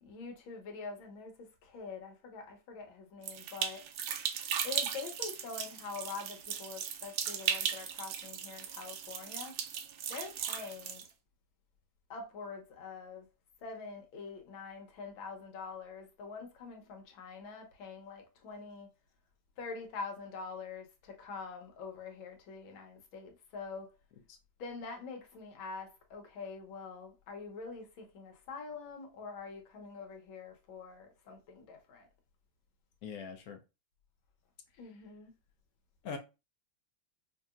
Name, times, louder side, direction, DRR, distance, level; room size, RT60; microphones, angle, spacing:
voice 1, 0.0-3.8 4.6-9.6 10.1-11.1 12.1-13.3 13.6-18.9 19.6-23.9 24.6-32.1 34.8-35.3, left 4 dB, 85° left, 1.7 m, -45 dB
sound 1, 3.2-11.1, right 8 dB, 85° right, 1.5 m, -37 dB
voice 2, 33.0-33.6 36.0-36.2, left 5 dB, 65° left, 1.0 m, -41 dB
5.3 x 2.8 x 2.4 m
omnidirectional pair, 2.1 m